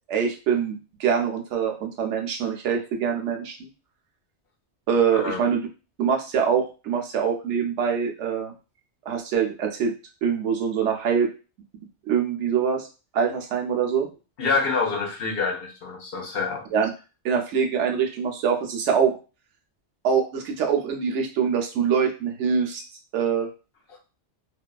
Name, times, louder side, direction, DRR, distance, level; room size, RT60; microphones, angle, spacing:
voice 1, 0.1-3.6 4.9-5.6 6.0-8.5 9.1-9.9 10.2-11.3 12.1-12.9 13.1-14.1 16.7-16.9 17.2-19.2 20.0-22.8 23.1-23.5, right 7 dB, 85° right, 2 dB, 0.9 m, -24 dB
voice 2, 5.1-5.4 14.4-16.6 23.9-24.0, left 4 dB, 60° left, 0 dB, 0.8 m, -26 dB
2.6 x 2.3 x 2.2 m, 0.33 s
omnidirectional pair, 1.2 m